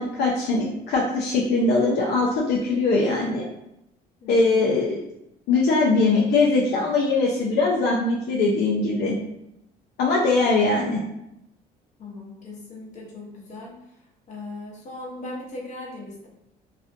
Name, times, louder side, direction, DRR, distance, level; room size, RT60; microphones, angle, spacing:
voice 1, 0.0-3.4 4.3-5.0 5.5-9.2 10.0-11.0, left 3 dB, 75° left, -2 dB, 0.5 m, -21 dB
voice 2, 4.2-4.6 12.0-14.0 14.3-16.3, left 2 dB, 45° left, -2 dB, 0.8 m, -38 dB
2.4 x 2.1 x 2.5 m, 0.83 s
cardioid pair, 110°, 17 cm